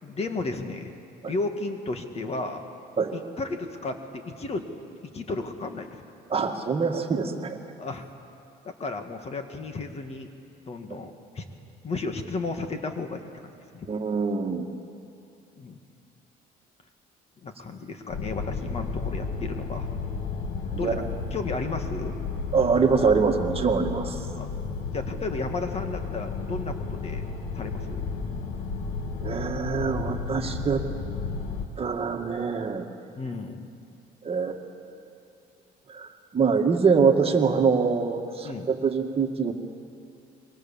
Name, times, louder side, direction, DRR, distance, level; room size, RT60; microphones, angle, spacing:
voice 1, 0.0-0.9 1.3-2.6 3.1-4.6 5.0-5.9 7.8-8.1 8.6-10.3 10.7-11.5 11.8-13.9 15.6-15.8 17.4-19.9 20.8-21.0 21.3-22.1 24.3-24.5 24.9-27.3 27.5-28.0 33.2-33.7 38.4-38.7, left 3 dB, 40° left, 6 dB, 2.1 m, -33 dB
voice 2, 6.3-7.6 10.9-11.0 13.9-14.7 20.7-21.1 22.5-24.2 29.2-30.8 31.8-32.9 34.2-34.6 35.9-39.5, right 5 dB, 35° right, 3 dB, 2.0 m, -24 dB
sound 1, 18.1-31.6, left 4 dB, 65° left, 2.3 m, -33 dB
27.0 x 23.5 x 7.4 m, 2.5 s
cardioid pair, 110°, 17 cm